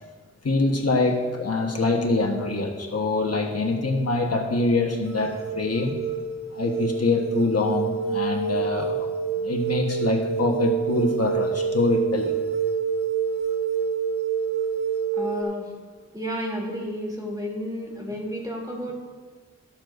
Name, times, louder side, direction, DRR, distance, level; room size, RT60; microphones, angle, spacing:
voice 1, 0.4-6.0 6.5-9.1 9.4-12.4, left 3 dB, 55° left, 1 dB, 1.3 m, -24 dB
sound 1, 4.8-15.4, right 7 dB, 35° right, 2.1 m, -27 dB
voice 2, 15.1-15.7 16.1-18.9, equal, 15° right, -2 dB, 2.9 m, -31 dB
13.5 x 13.0 x 2.6 m, 1.5 s
wide cardioid pair, 70°, 29 cm